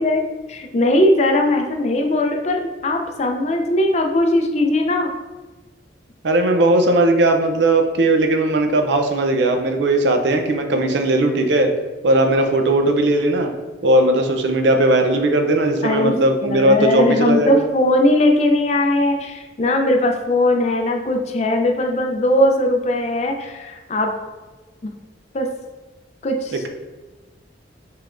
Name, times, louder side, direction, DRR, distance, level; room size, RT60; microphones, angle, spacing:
voice 1, 0.0-5.1 15.8-16.2 16.4-24.2 24.8-24.9 25.3-25.5 26.2-26.6, left 1 dB, 35° left, 3 dB, 0.4 m, -19 dB
voice 2, 6.2-11.7 12.0-13.5 13.8-17.6, right 1 dB, 75° right, 5 dB, 0.6 m, -17 dB
5.6 x 3.4 x 2.5 m, 1.2 s
head